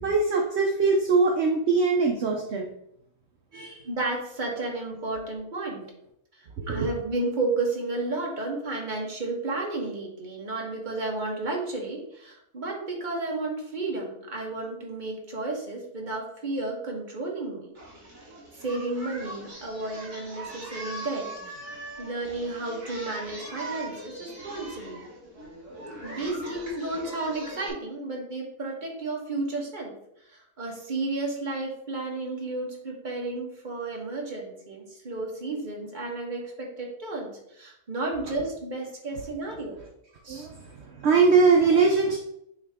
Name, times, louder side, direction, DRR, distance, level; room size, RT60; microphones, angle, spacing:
voice 1, 0.0-2.7 3.5-3.8 6.6-6.9 40.3-40.6 41.0-42.2, right 4 dB, 55° right, 0 dB, 0.9 m, -22 dB
voice 2, 3.8-5.9 6.4-17.7 18.5-25.1 26.0-30.0 30.3-39.8 40.2-40.5, right 2 dB, 30° right, -1 dB, 1.5 m, -32 dB
Singing, 17.8-27.7, right 2 dB, 80° right, 3.2 m, -41 dB
9.4 x 3.2 x 3.6 m, 0.77 s
omnidirectional pair, 1.6 m